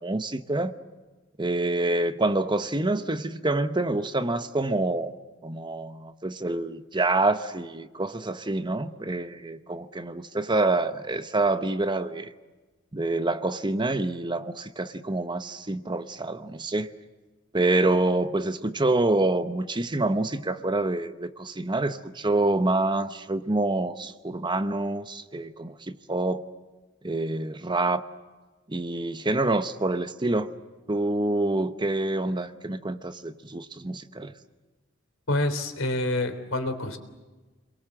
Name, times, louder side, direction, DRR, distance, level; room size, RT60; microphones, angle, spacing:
voice 1, 0.0-0.7 1.4-5.1 5.4-12.3 12.9-16.9 17.5-26.4 27.0-28.0 28.7-30.5 30.9-34.3, right 2 dB, 25° right, 10 dB, 1.0 m, -27 dB
voice 2, 35.3-37.0, left 1 dB, 80° left, 7 dB, 3.5 m, -27 dB
30.0 x 22.5 x 7.7 m, 1.2 s
head